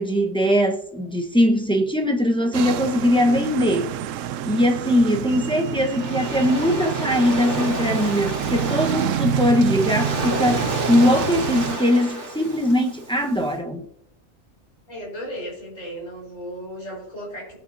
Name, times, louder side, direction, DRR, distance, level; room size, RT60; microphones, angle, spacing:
voice 1, 0.0-3.9 4.4-13.8, equal, 5° left, 1.0 m, -21 dB
sound 1, 2.5-11.8, right 10 dB, 80° right, 1.0 m, -28 dB
Waves surf, 5.2-13.4, right 1 dB, 65° right, 2.3 m, -30 dB
voice 2, 14.9-17.6, equal, 85° left, 5.2 m, -35 dB
19.0 x 8.9 x 2.7 m
omnidirectional pair, 1.3 m